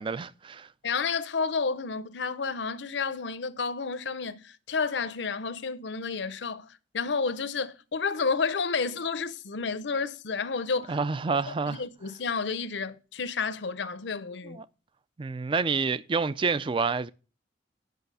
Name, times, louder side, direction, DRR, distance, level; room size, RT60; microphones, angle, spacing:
voice 1, 0.0-0.7 10.9-11.8 14.4-14.6 15.2-17.1, right 4 dB, 30° right, 0.4 m, -28 dB
voice 2, 0.8-11.0 11.5-14.6, left 5 dB, 75° left, 0.7 m, -31 dB
9.2 x 5.6 x 5.4 m
head